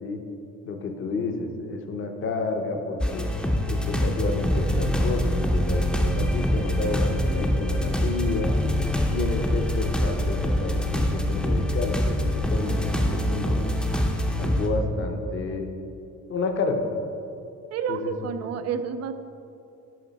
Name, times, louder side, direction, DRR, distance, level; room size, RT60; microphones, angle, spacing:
voice 1, 0.7-3.3 3.7-8.5 9.1-13.7 14.4-15.7 16.3-16.8 17.9-18.3, left 3 dB, 40° left, 4 dB, 0.8 m, -30 dB
sound 1, 3.0-14.7, equal, 5° left, 0.6 m, -24 dB
voice 2, 17.7-19.1, right 7 dB, 55° right, 10 dB, 0.5 m, -29 dB
11.0 x 5.3 x 4.1 m, 2.7 s
cardioid pair, 165°, 31 cm